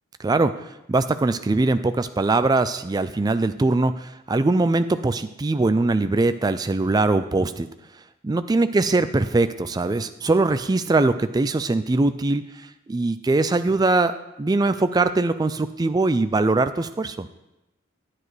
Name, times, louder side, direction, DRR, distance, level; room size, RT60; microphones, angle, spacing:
voice 1, 0.2-0.5 0.9-7.7 8.2-12.4 12.9-17.3, right 2 dB, 20° right, 11 dB, 0.3 m, -21 dB
10.0 x 9.2 x 3.2 m, 0.93 s
head